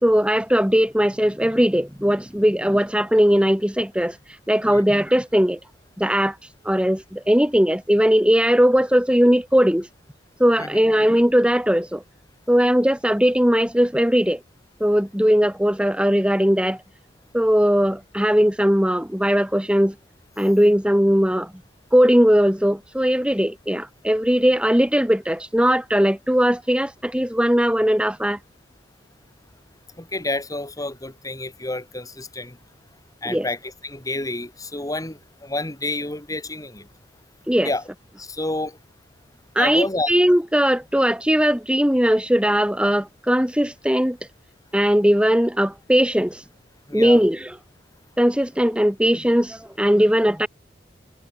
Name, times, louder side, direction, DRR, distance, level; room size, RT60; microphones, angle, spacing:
voice 1, 0.0-4.2 4.5-5.6 6.0-6.4 6.6-9.9 10.4-12.0 12.5-14.4 14.8-16.8 17.3-19.9 20.4-21.5 21.9-28.4 33.3-33.5 37.5-37.7 39.5-44.2 44.7-46.4 46.9-47.5 48.2-50.5, equal, 5° right, 2.7 m, -19 dB
voice 2, 30.0-32.6 33.2-36.9 37.6-37.8 38.2-38.8 39.6-40.1 46.9-47.2, left 2 dB, 20° left, 3.4 m, -29 dB
head